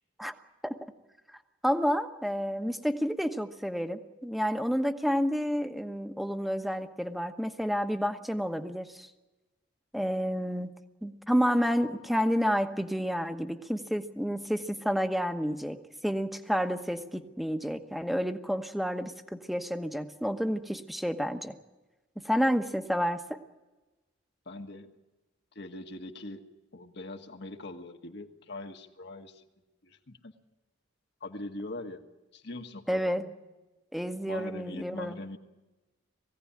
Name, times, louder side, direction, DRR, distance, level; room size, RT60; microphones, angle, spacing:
voice 1, 1.6-9.1 9.9-10.7 11.0-21.5 22.2-23.4 32.9-33.2 33.9-35.2, equal, ahead, 7 dB, 1.1 m, -30 dB
voice 2, 24.4-25.0 25.5-26.5 26.7-29.4 29.8-30.3 31.2-32.0 32.3-33.3 34.3-35.4, left 2 dB, 60° left, 4 dB, 1.6 m, -42 dB
21.0 x 16.5 x 9.9 m, 1.1 s
head